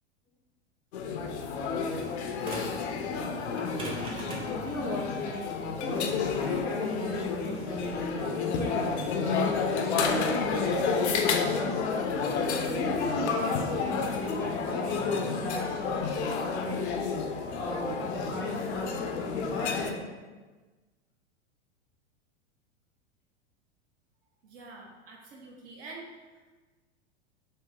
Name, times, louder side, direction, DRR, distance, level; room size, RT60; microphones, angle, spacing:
sound 1, 0.9-19.9, left 5 dB, 70° left, 0.6 m, -30 dB
sound 2, 2.4-2.9 3.5-8.5, equal, 15° right, 0.8 m, -40 dB
voice 1, 4.6-5.4 5.8-9.4 9.8-11.8 12.7-16.1 16.4-17.0 17.6-20.0, left 2 dB, 5° left, -9 dB, 0.4 m, -36 dB
voice 2, 24.4-26.0, right 3 dB, 60° right, -2 dB, 0.9 m, -46 dB
2.9 x 2.7 x 3.5 m, 1.3 s
hypercardioid pair, 105°, 34 cm